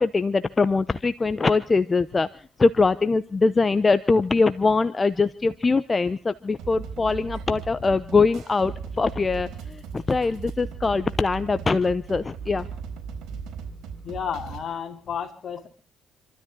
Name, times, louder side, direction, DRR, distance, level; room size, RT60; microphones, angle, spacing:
voice 1, 0.0-12.7, left 4 dB, 25° left, 13 dB, 0.8 m, -22 dB
sound 1, 6.6-14.6, right 6 dB, 80° right, 4.2 m, -37 dB
voice 2, 14.0-15.7, left 7 dB, 55° left, 5 dB, 3.4 m, -32 dB
28.5 x 13.0 x 3.8 m, 0.42 s
cardioid pair, 90°, 0 cm